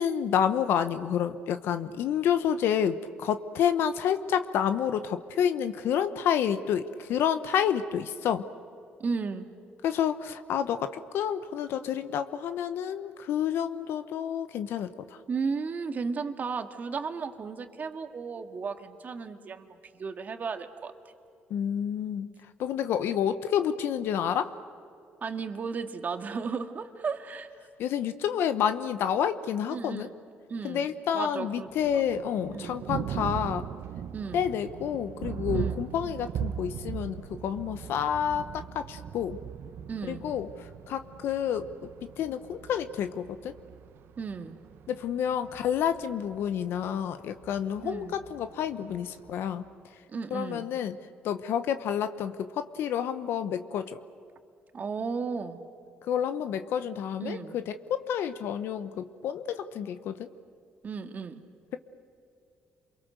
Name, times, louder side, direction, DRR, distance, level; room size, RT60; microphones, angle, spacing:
voice 1, 0.0-8.4 9.8-15.2 21.5-22.3 22.6-24.5 27.8-30.1 30.6-33.7 34.3-39.4 40.0-41.7 42.2-43.5 44.9-49.6 50.3-51.0 51.2-54.0 56.1-60.3, left 9 dB, 75° left, 10 dB, 1.0 m, -29 dB
voice 2, 9.0-9.5 15.3-19.7 19.9-20.9 25.2-27.5 29.7-30.1 30.5-30.9 31.1-31.7 32.5-32.8 34.1-34.4 35.5-35.8 39.9-40.3 44.2-44.6 47.8-48.1 50.1-50.7 54.7-55.6 57.2-57.6 60.8-61.4, right 5 dB, 45° right, 7 dB, 1.9 m, -34 dB
Thunder, 31.7-49.7, right 9 dB, 70° right, 0.8 m, -39 dB
29.0 x 23.0 x 6.7 m, 2.6 s
supercardioid pair, 75°, 4 cm